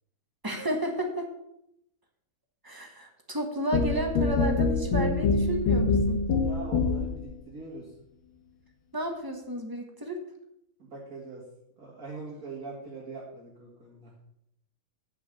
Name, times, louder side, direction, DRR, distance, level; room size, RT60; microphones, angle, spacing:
voice 1, 0.4-1.3 2.6-6.3 8.9-10.2, right 1 dB, 15° right, 3 dB, 0.9 m, -32 dB
sound 1, 3.7-7.3, left 4 dB, 75° left, 1.8 m, -25 dB
voice 2, 6.3-7.9 10.8-11.4 11.8-14.1, right 3 dB, 45° right, -6 dB, 2.5 m, -42 dB
9.0 x 5.9 x 6.5 m, 0.78 s
omnidirectional pair, 2.3 m